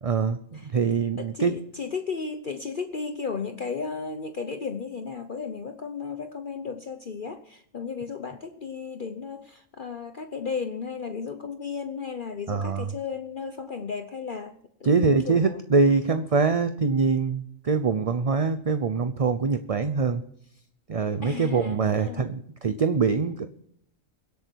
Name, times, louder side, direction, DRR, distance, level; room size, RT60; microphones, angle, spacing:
voice 1, 0.0-0.4 0.7-1.5 12.5-12.9 14.8-20.2 20.9-23.5, right 4 dB, 35° right, 10 dB, 0.6 m, -24 dB
voice 2, 1.2-15.6 21.2-22.3, left 5 dB, 45° left, 8 dB, 1.0 m, -34 dB
24.0 x 8.3 x 4.6 m, 0.69 s
omnidirectional pair, 1.3 m